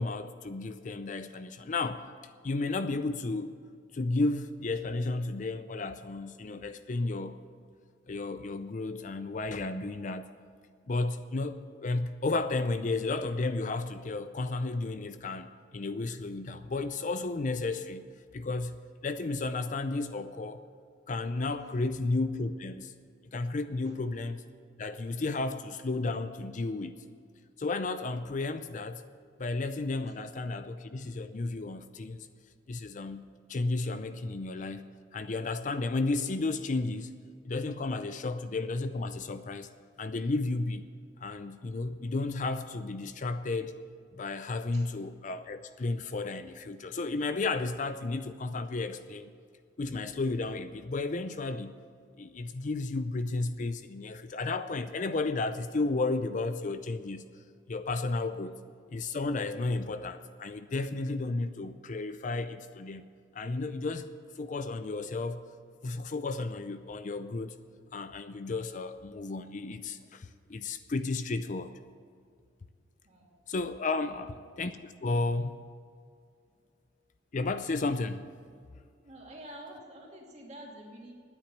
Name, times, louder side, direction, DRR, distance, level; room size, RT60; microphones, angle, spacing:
voice 1, 0.0-2.0 2.4-3.5 3.9-7.4 8.1-10.3 10.9-15.5 15.7-18.0 18.3-20.6 21.1-22.9 23.3-24.4 24.8-26.9 27.6-29.0 29.4-32.3 32.7-37.1 37.4-39.7 40.0-40.8 41.2-43.7 44.2-49.3 49.8-51.7 52.2-57.2 57.7-58.5 58.9-63.0 63.3-64.1 64.4-65.4 65.8-67.5 67.9-71.7 73.5-74.3 74.6-75.6 77.3-78.2, left 3 dB, 40° left, 11 dB, 0.5 m, -33 dB
voice 2, 79.0-81.1, right 1 dB, 35° right, -1 dB, 2.5 m, -49 dB
9.9 x 8.9 x 10.0 m, 2.2 s
head